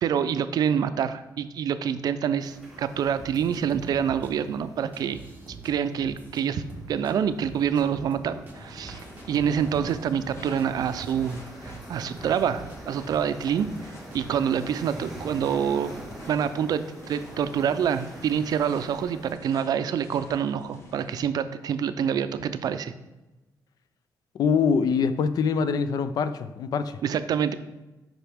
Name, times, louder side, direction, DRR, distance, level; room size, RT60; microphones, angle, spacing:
voice 1, 0.0-5.2 5.6-6.6 6.9-9.0 9.3-13.7 14.1-15.9 16.3-22.9 27.0-27.5, right 8 dB, 65° right, 11 dB, 0.5 m, -26 dB
sound 1, 2.4-19.3, right 1 dB, ahead, 1.7 m, -45 dB
sound 2, 3.2-4.3 4.9-5.7 6.0-7.1 7.4-8.1 8.5-8.6 8.8-12.8 13.0-13.8 14.1-14.3, right 4 dB, 25° right, 1.2 m, -45 dB
sound 3, 8.5-21.2, left 2 dB, 40° left, 1.3 m, -49 dB
voice 2, 24.3-27.0, left 6 dB, 65° left, 12 dB, 0.5 m, -24 dB
8.9 x 5.9 x 3.5 m, 1.0 s
wide cardioid pair, 160°, 7 cm